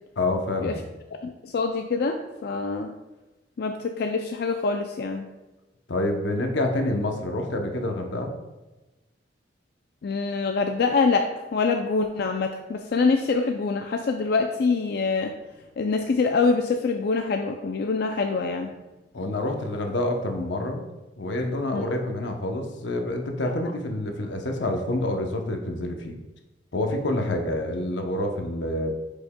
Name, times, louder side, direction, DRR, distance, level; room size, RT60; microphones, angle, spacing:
voice 1, 0.2-0.8 5.9-8.3 19.1-20.8 21.2-26.2 26.7-28.9, left 1 dB, 85° left, 4 dB, 0.8 m, -27 dB
voice 2, 1.2-2.9 3.6-5.3 10.0-15.3 15.8-18.7 21.7-21.8, left 4 dB, 60° left, 4 dB, 0.4 m, -25 dB
8.3 x 5.2 x 2.2 m, 1.1 s
head